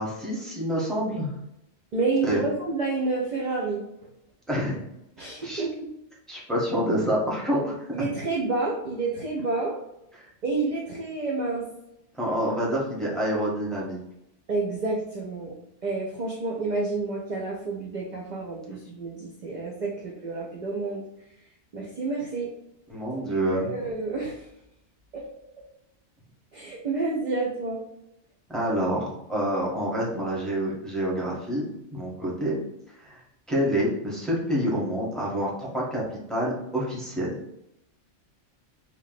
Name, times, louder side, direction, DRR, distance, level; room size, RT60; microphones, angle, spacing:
voice 1, 0.0-1.3 2.2-2.4 4.5-4.8 5.2-5.6 6.3-8.0 10.1-10.3 12.1-14.0 22.9-23.7 28.5-32.6 33.0-33.2 33.5-36.0 36.3-37.4, equal, ahead, -5 dB, 1.0 m, -27 dB
voice 2, 1.9-3.8 5.2-5.9 7.9-9.8 10.4-11.6 14.5-15.5 15.8-21.0 21.7-22.5 23.1-24.5 25.1-25.2 26.5-27.8, right 3 dB, 50° right, -1 dB, 0.6 m, -29 dB
3.0 x 3.0 x 4.0 m, 0.84 s
omnidirectional pair, 1.2 m